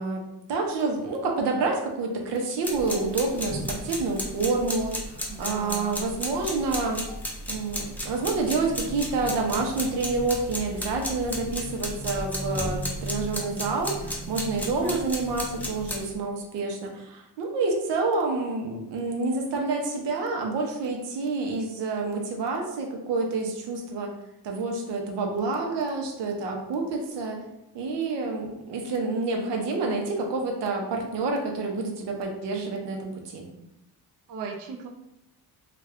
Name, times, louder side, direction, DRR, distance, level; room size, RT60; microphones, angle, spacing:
voice 1, 0.0-7.0 7.5-24.1 24.4-27.4 27.7-33.5, right 3 dB, 90° right, 1 dB, 0.8 m, -28 dB
sound 1, 2.6-16.1, equal, 5° left, 0.3 m, -34 dB
voice 2, 5.3-6.0 14.7-15.1 34.3-34.9, right 6 dB, 55° right, 1 dB, 0.5 m, -36 dB
3.3 x 2.4 x 3.5 m, 0.87 s
cardioid pair, 170°, 41 cm